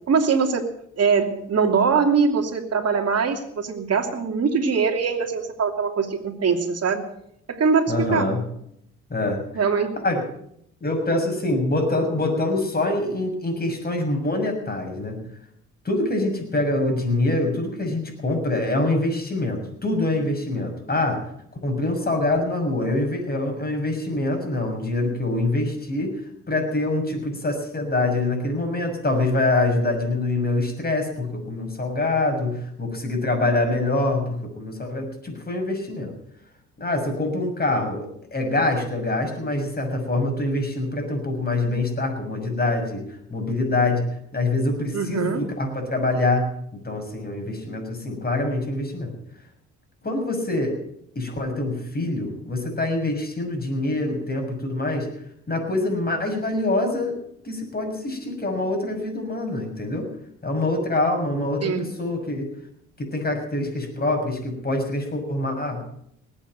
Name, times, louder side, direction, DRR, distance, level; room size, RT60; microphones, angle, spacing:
voice 1, 0.1-0.6 1.0-7.0 7.5-8.3 9.5-9.9 44.9-45.4 61.6-61.8, right 5 dB, 50° right, 4 dB, 2.9 m, -22 dB
voice 2, 7.9-8.4 9.1-9.6 10.0-10.2 10.8-15.2 15.8-21.2 21.6-26.2 26.5-36.1 36.8-43.0 43.3-44.0 44.3-49.1 50.0-50.7 51.1-55.1 55.5-57.2 57.4-60.1 60.4-62.5 63.0-65.8, left 2 dB, 30° left, 4 dB, 6.6 m, -25 dB
19.5 x 9.0 x 7.8 m, 0.70 s
supercardioid pair, 60°, 32 cm